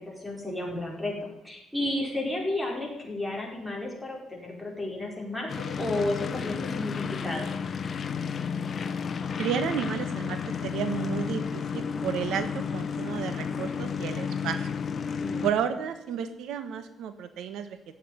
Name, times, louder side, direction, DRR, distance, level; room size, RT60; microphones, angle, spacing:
voice 1, 0.0-7.5 15.2-15.5, left 1 dB, 5° right, 0 dB, 4.9 m, -32 dB
sound 1, 5.5-15.5, left 6 dB, 40° left, 1.1 m, -32 dB
voice 2, 9.4-14.7 15.4-17.8, right 8 dB, 85° right, 10 dB, 1.2 m, -32 dB
15.0 x 8.5 x 9.6 m, 0.89 s
cardioid pair, 130°, 0 cm